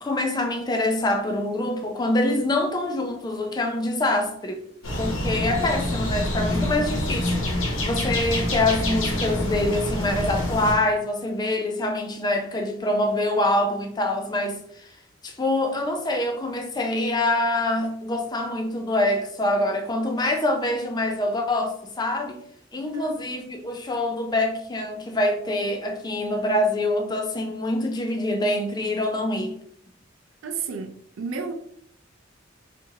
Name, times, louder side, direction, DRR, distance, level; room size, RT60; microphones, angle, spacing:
voice 1, 0.0-4.6 5.0-14.6 15.2-22.4 22.7-29.6, left 1 dB, 20° left, 0.4 m, -25 dB
sound 1, 4.8-10.8, left 1 dB, 75° left, 0.9 m, -26 dB
voice 2, 22.8-23.2 30.4-31.5, right 4 dB, 80° right, 0.4 m, -32 dB
4.2 x 2.5 x 2.7 m
head